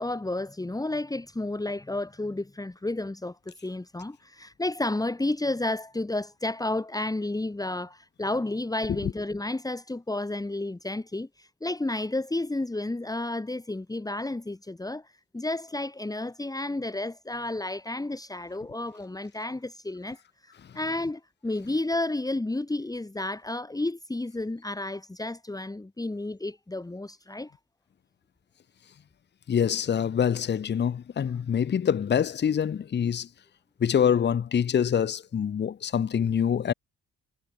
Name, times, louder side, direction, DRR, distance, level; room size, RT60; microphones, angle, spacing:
voice 1, 0.0-27.5, left 2 dB, 10° left, 2.4 m, -31 dB
voice 2, 29.5-33.3 33.8-36.7, left 8 dB, 35° left, 0.8 m, -25 dB
cardioid pair, 90°, 30 cm